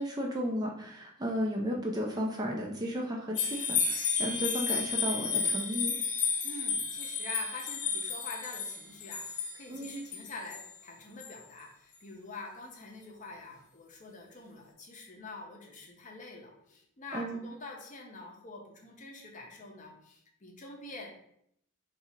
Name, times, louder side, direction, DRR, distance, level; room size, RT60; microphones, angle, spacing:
voice 1, 0.0-5.9 9.7-10.1 17.1-17.4, equal, 15° right, -1 dB, 0.3 m, -34 dB
sound 1, 3.3-10.7 11.2-11.3, left 5 dB, 80° left, 0.6 m, -32 dB
voice 2, 6.4-21.1, left 2 dB, 35° left, 0 dB, 0.6 m, -46 dB
2.7 x 2.4 x 4.2 m, 0.72 s
head